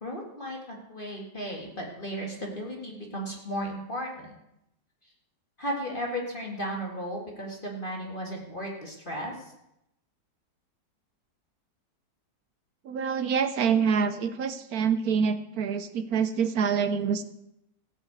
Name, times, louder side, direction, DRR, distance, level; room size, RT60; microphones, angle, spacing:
voice 1, 0.0-4.3 5.6-9.3, equal, 30° left, -1 dB, 2.3 m, -35 dB
voice 2, 12.8-17.2, right 6 dB, 65° right, 12 dB, 1.1 m, -26 dB
15.5 x 6.5 x 8.2 m, 0.82 s
omnidirectional pair, 1.9 m